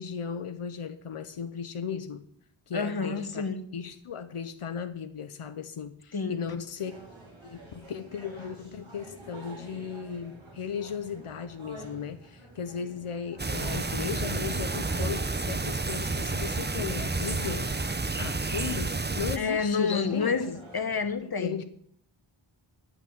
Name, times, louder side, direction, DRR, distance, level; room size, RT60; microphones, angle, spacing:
voice 1, 0.0-2.2 2.7-3.4 3.7-6.9 7.4-17.7 18.2-20.6 21.2-21.6, left 7 dB, 85° left, 0.8 m, -36 dB
voice 2, 2.7-3.6 6.1-6.5 19.4-20.5 20.7-21.6, left 5 dB, 45° left, 1.2 m, -29 dB
sound 1, 6.8-21.1, right 2 dB, 65° right, 3.8 m, -48 dB
sound 2, 13.4-19.4, right 3 dB, 20° right, 0.6 m, -30 dB
10.5 x 6.0 x 8.3 m
wide cardioid pair, 50°, 50 cm